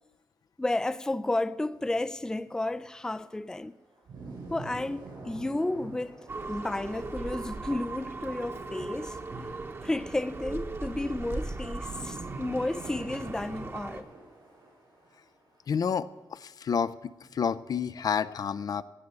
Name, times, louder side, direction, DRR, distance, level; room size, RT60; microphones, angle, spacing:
voice 1, 0.6-3.8 4.5-9.2 9.8-14.1, left 2 dB, 10° left, 0.4 m, -32 dB
sound 1, 1.7-8.0 9.3-15.8 16.1-16.2 17.2-18.1, right 3 dB, 90° right, 6.7 m, -47 dB
sound 2, 6.3-14.0, right 3 dB, 35° right, 1.1 m, -38 dB
voice 2, 15.7-17.0 17.3-18.8, left 7 dB, 60° left, 0.5 m, -29 dB
17.5 x 6.7 x 8.4 m
wide cardioid pair, 125°, 7 cm